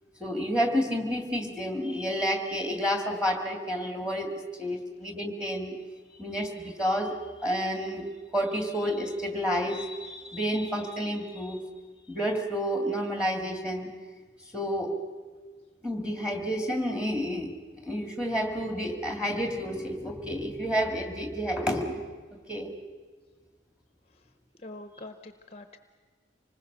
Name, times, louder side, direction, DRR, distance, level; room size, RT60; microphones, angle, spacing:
voice 1, 0.2-5.8 6.2-11.6 12.1-14.0 14.5-14.9 15.8-22.0 22.5-22.7, equal, 5° right, 4 dB, 2.2 m, -30 dB
voice 2, 24.6-25.8, left 2 dB, 35° left, 8 dB, 0.9 m, -44 dB
26.0 x 19.5 x 6.7 m, 1.5 s
head